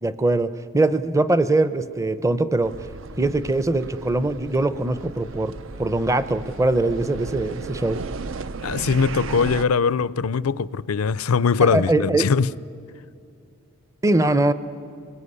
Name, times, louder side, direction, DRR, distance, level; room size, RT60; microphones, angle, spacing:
voice 1, 0.0-2.7 3.2-8.0 11.6-12.2 14.0-14.5, right 2 dB, 15° right, 0.7 m, -22 dB
sound 1, 2.6-9.7, right 4 dB, 60° right, 0.6 m, -35 dB
voice 2, 8.6-12.5, left 5 dB, 85° left, 0.5 m, -21 dB
25.5 x 21.5 x 9.8 m
head